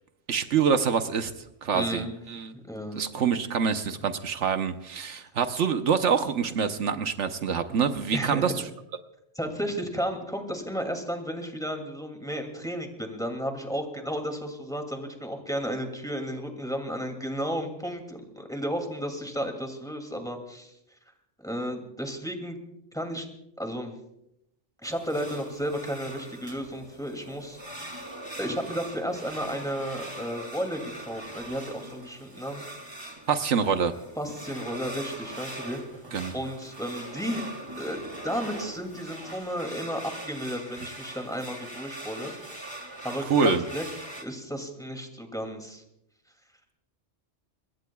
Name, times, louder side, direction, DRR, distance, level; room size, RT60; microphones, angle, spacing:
voice 1, 0.3-1.3 1.6-2.5 2.9-8.5 33.3-33.9 36.1-36.3 43.3-43.6, right 6 dB, 80° right, 8 dB, 1.2 m, -25 dB
voice 2, 1.7-2.1 2.5-3.0 8.1-8.6 9.3-20.7 21.4-22.6 22.9-23.3 23.6-23.9 24.8-27.6 27.9-28.0 28.4-32.7 34.2-35.8 36.3-37.4 37.8-42.8 43.0-43.8 44.2-45.8, equal, 5° left, 4 dB, 2.4 m, -33 dB
sound 1, 24.8-44.2, right 1 dB, 20° right, 2.4 m, -41 dB
26.0 x 21.5 x 2.3 m, 0.80 s
omnidirectional pair, 1.2 m